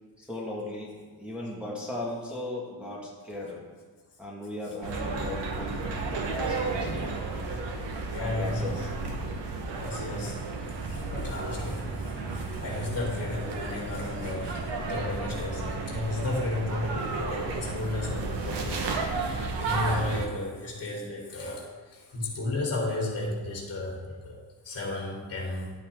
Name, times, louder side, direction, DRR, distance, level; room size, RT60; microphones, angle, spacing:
voice 1, 0.2-3.7 4.2-6.9 8.2-8.8, left 2 dB, 5° right, -6 dB, 1.9 m, -37 dB
sound 1, 4.8-20.3, right 3 dB, 75° right, 1.5 m, -33 dB
voice 2, 6.8-7.3 8.1-8.9 9.1-9.4 9.7-10.4 10.9-25.7, left 2 dB, 35° left, -4 dB, 3.5 m, -34 dB
12.0 x 8.6 x 3.7 m, 1.4 s
cardioid pair, 145°, 42 cm